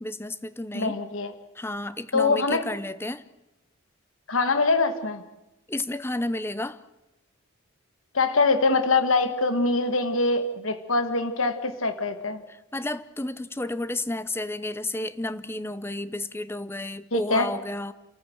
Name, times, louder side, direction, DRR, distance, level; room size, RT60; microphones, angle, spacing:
voice 1, 0.0-1.0 1.6-3.2 5.7-6.8 12.7-17.9, left 1 dB, 10° left, 0.6 m, -31 dB
voice 2, 0.7-1.3 2.1-2.6 4.3-5.2 8.1-12.4 17.1-17.5, left 3 dB, 80° left, 1.6 m, -23 dB
28.0 x 14.5 x 7.8 m
head